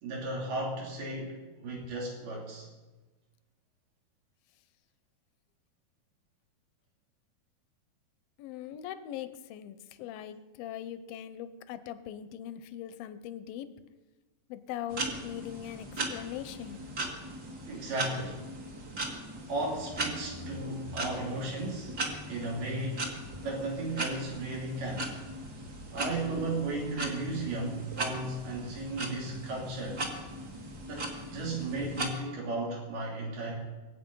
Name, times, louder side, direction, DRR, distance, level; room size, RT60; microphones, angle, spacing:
voice 1, 0.0-2.7 17.7-18.4 19.5-23.1 23.4-25.1 25.9-30.0 30.9-33.6, right 2 dB, 80° right, -3 dB, 4.9 m, -35 dB
voice 2, 8.4-13.7 14.5-16.8, left 10 dB, 80° left, 12 dB, 2.4 m, -41 dB
sound 1, 14.9-32.1, right 2 dB, 35° right, 1.7 m, -38 dB
23.0 x 8.6 x 5.4 m, 1.2 s
omnidirectional pair, 4.4 m